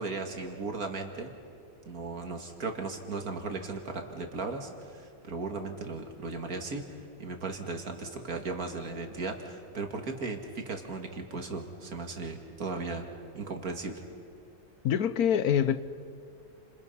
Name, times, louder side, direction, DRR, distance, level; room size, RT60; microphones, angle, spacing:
voice 1, 0.0-1.3 1.9-13.1 13.3-14.0, right 3 dB, 75° right, 2.6 m, -36 dB
voice 2, 14.8-15.8, left 9 dB, 90° left, 1.3 m, -25 dB
30.0 x 27.0 x 5.6 m
omnidirectional pair, 1.5 m